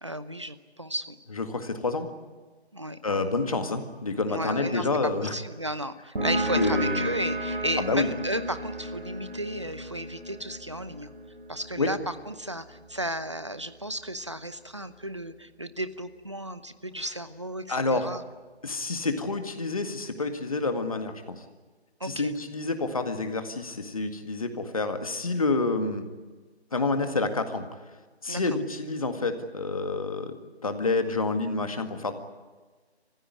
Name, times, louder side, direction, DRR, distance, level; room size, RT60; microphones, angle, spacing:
voice 1, 0.0-1.2 2.7-3.2 4.3-4.9 5.2-11.1 11.5-12.0 12.3-18.2 22.0-22.3 28.3-28.4, right 1 dB, 25° right, 13 dB, 0.8 m, -34 dB
voice 2, 1.3-2.1 3.0-5.3 6.5-7.1 7.8-8.1 11.8-11.9 17.0-17.1 17.7-18.1 18.6-21.4 22.0-26.1 26.7-27.6 28.2-30.3 30.6-32.1, left 3 dB, 30° left, 7 dB, 1.9 m, -28 dB
sound 1, 6.2-13.4, right 1 dB, 50° right, 4.0 m, -33 dB
29.5 x 15.5 x 9.7 m, 1.3 s
figure-of-eight pair, 175°, 33 cm